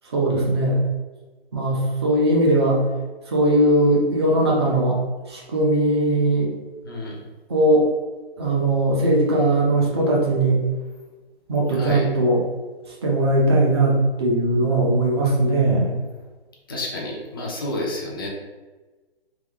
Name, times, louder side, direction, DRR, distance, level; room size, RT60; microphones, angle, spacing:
voice 1, 0.1-0.8 1.5-2.8 3.3-5.0 5.3-6.5 7.5-7.8 8.4-10.6 11.5-12.4 13.0-16.0, right 1 dB, 25° right, -2 dB, 0.7 m, -19 dB
voice 2, 6.8-7.2 11.7-12.1 16.7-18.3, left 1 dB, 20° left, -3 dB, 0.5 m, -30 dB
3.5 x 2.7 x 3.4 m, 1.3 s
hypercardioid pair, 165°, 31 cm